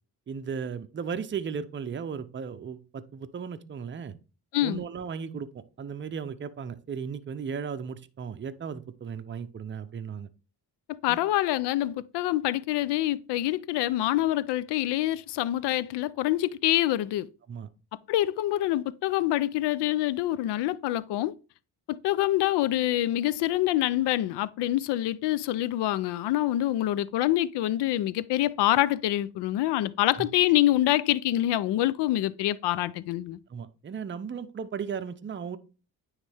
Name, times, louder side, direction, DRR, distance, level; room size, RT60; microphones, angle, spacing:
voice 1, 0.3-4.1 4.6-10.3 11.1-11.2 17.5-17.7 30.2-30.3 33.5-35.6, right 6 dB, 30° right, 0.6 m, -36 dB
voice 2, 11.0-17.3 18.1-21.3 21.9-33.4, left 14 dB, 80° left, 0.5 m, -26 dB
9.6 x 3.2 x 3.4 m
cardioid pair, 85°, 40 cm